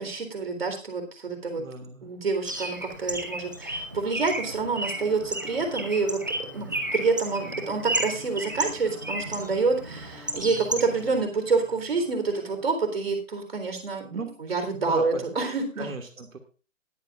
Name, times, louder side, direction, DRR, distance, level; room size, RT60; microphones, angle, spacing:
voice 1, 0.0-1.6 2.0-6.2 6.5-15.9, right 4 dB, 50° right, 6 dB, 3.9 m, -27 dB
voice 2, 1.6-2.1 6.5-6.9 10.4-11.1 14.1-15.2 15.8-16.4, right 3 dB, 90° right, 4 dB, 2.4 m, -38 dB
Bird, 2.4-11.2, right 1 dB, 15° right, 0.9 m, -33 dB
sound 1, 4.3-12.7, left 1 dB, ahead, 2.1 m, -50 dB
20.5 x 8.8 x 2.5 m, 0.34 s
hypercardioid pair, 180°, 39 cm